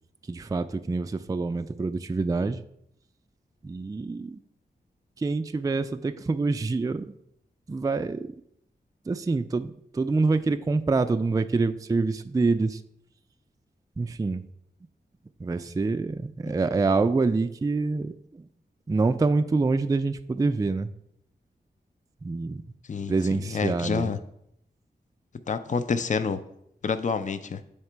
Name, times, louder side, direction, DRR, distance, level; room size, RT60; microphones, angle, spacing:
voice 1, 0.3-2.6 3.6-4.4 5.2-7.1 7.7-8.3 9.1-12.8 14.0-14.4 15.4-18.1 18.9-20.9 22.2-22.6 23.1-24.1, right 3 dB, 20° right, 9 dB, 0.3 m, -26 dB
voice 2, 22.9-24.2 25.5-26.4 26.8-27.6, left 5 dB, 45° left, 11 dB, 0.5 m, -28 dB
8.0 x 2.9 x 4.5 m, 0.75 s
cardioid pair, 40°, 18 cm